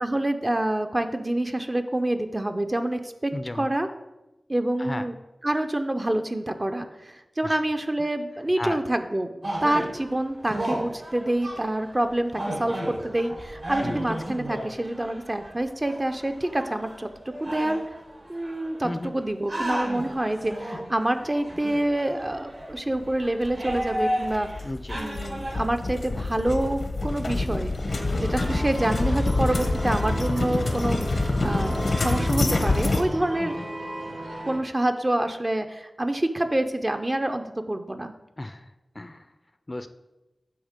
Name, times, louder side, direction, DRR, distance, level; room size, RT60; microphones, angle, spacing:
voice 1, 0.0-3.9 4.5-5.2 5.4-17.1 17.4-17.8 18.3-24.5 24.9-33.6 34.5-38.1, right 1 dB, 30° right, 7 dB, 0.6 m, -27 dB
voice 2, 3.3-3.7 4.8-5.1 7.4-7.6 8.6-8.8 13.8-14.0 18.8-19.2 24.6-25.0 29.4-29.5 30.4-30.5 32.0-32.3 33.4-33.6 38.4-38.7 38.9-39.2 39.7-39.9, left 1 dB, 35° left, 10 dB, 0.5 m, -34 dB
sound 1, 9.4-19.0 19.5-24.6 24.9-25.6, right 1 dB, 70° right, 3.1 m, -34 dB
sound 2, 23.4-33.0, left 2 dB, 80° left, 0.8 m, -26 dB
sound 3, 27.9-34.6, right 1 dB, 85° right, 2.0 m, -36 dB
8.6 x 3.6 x 6.5 m, 1.0 s
wide cardioid pair, 60°, 0 cm